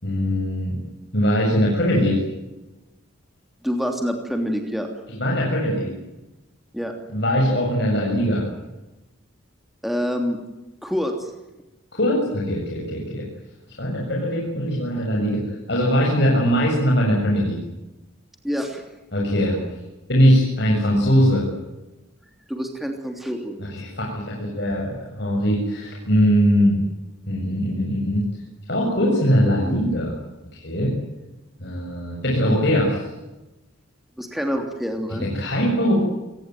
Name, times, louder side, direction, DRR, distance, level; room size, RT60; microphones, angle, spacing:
voice 1, 0.0-0.8 1.1-2.2 5.1-5.9 7.1-8.4 11.9-13.3 13.8-15.4 15.7-17.6 19.1-19.6 20.1-21.4 23.6-26.8 27.3-28.2 28.7-30.1 30.5-30.9 31.6-33.1 35.2-36.0, equal, 55° left, -2 dB, 7.3 m, -21 dB
voice 2, 3.6-4.9 6.7-6.9 9.8-10.4 10.8-11.3 18.4-18.8 22.5-23.6 34.2-35.3, equal, ahead, 3 dB, 3.1 m, -26 dB
28.0 x 19.0 x 9.4 m, 1.0 s
head